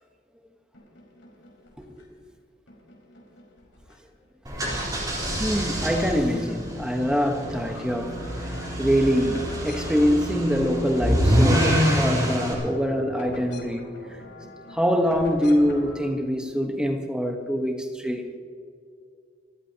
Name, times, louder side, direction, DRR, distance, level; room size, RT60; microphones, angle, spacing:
sound 1, 0.7-2.2 2.7-4.3 4.6-5.9 6.2-16.1, left 1 dB, 80° left, 4.8 m, -46 dB
sound 2, 4.4-12.5, equal, 20° right, 3.8 m, -26 dB
voice 1, 5.4-8.3 8.8-14.2 14.7-18.2, equal, 5° right, 1.2 m, -24 dB
28.0 x 14.5 x 2.9 m
head